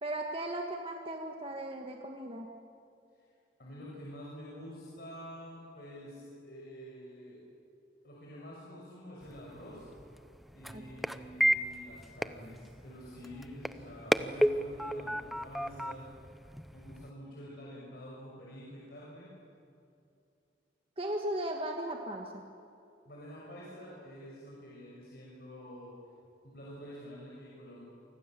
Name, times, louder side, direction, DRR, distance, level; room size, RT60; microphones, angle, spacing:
voice 1, 0.0-2.5 10.7-10.9 21.0-22.4, right 1 dB, 30° right, 2 dB, 1.7 m, -37 dB
voice 2, 3.6-7.4 8.0-9.9 10.5-16.1 16.7-19.3 23.0-26.0 26.4-27.8, equal, 55° left, -5 dB, 6.5 m, -48 dB
sound 1, 9.2-17.1, equal, ahead, 0.6 m, -34 dB
29.0 x 25.0 x 7.7 m, 2.6 s
head